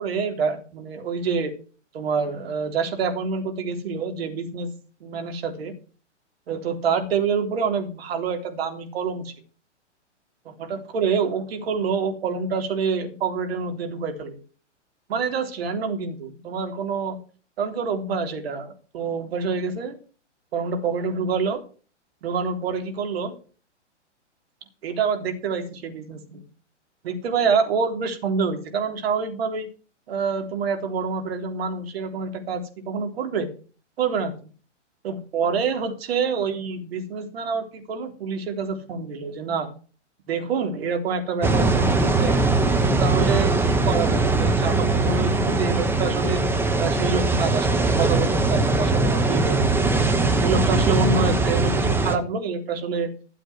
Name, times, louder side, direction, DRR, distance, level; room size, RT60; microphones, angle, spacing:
voice 1, 0.0-1.5 1.9-4.7 5.0-5.7 6.5-9.3 10.5-14.4 15.1-17.2 17.6-20.0 20.5-21.6 22.2-23.3 24.8-26.4 27.0-29.7 30.1-33.5 34.0-34.3 35.0-39.7 40.3-42.4 42.9-46.4 46.8-49.6 50.4-53.1, right 5 dB, 55° right, 5 dB, 3.6 m, -27 dB
sound 1, 41.4-52.2, right 3 dB, 5° right, 1.1 m, -21 dB
13.0 x 7.7 x 6.2 m, 0.38 s
figure-of-eight pair, 120°, 36 cm